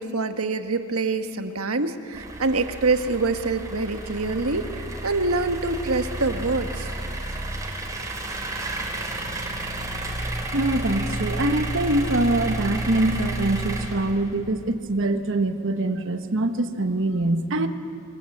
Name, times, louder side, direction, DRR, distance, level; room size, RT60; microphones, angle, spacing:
voice 1, 0.0-6.9, right 3 dB, 75° right, 7 dB, 1.4 m, -25 dB
sound 1, 2.1-14.5, right 2 dB, 15° right, 3.2 m, -31 dB
voice 2, 10.5-17.7, right 1 dB, 60° right, 8 dB, 1.3 m, -24 dB
25.0 x 24.0 x 7.9 m, 2.5 s
head